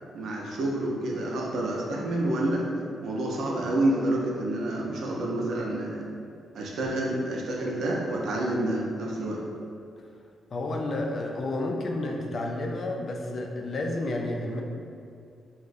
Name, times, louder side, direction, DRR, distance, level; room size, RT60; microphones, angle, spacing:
voice 1, 0.1-2.7 3.0-6.1 6.5-9.4, right 1 dB, 75° right, -2 dB, 0.5 m, -28 dB
voice 2, 10.5-14.6, left 2 dB, 55° left, 1 dB, 0.4 m, -30 dB
2.5 x 2.1 x 3.9 m, 2.4 s
cardioid pair, 65°, 0 cm